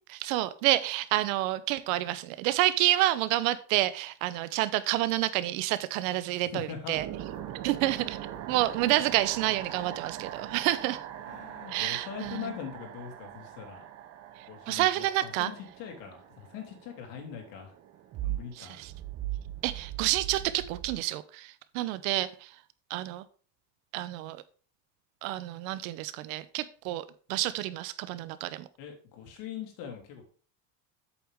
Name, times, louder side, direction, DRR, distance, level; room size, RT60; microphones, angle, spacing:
voice 1, 0.1-7.1 7.6-8.2 8.5-11.0 11.7-12.5 14.7-15.5 18.6-18.9 19.6-22.5 22.9-23.2 23.9-24.4 25.2-28.7, right 15 dB, 75° right, 15 dB, 0.9 m, -29 dB
voice 2, 6.4-6.9 11.3-13.9 14.5-15.5 15.8-17.7 18.2-18.8 28.8-30.2, left 8 dB, 65° left, 2 dB, 2.9 m, -42 dB
sound 1, 6.9-21.0, right 12 dB, 40° right, 0.9 m, -41 dB
8.3 x 7.3 x 3.6 m, 0.40 s
cardioid pair, 145°, 41 cm